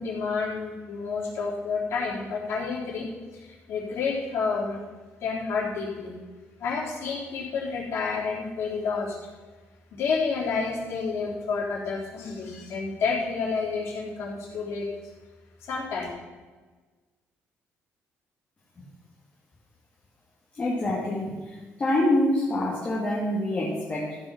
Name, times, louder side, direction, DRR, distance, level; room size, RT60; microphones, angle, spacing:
voice 1, 0.0-4.8 5.2-6.2 6.6-9.1 9.9-14.9 15.6-16.1, left 4 dB, 65° left, -5 dB, 4.0 m, -29 dB
voice 2, 20.5-21.4 21.8-24.2, left 1 dB, 30° left, -5 dB, 2.3 m, -25 dB
14.5 x 5.6 x 6.0 m, 1.3 s
cardioid pair, 125°, 5 cm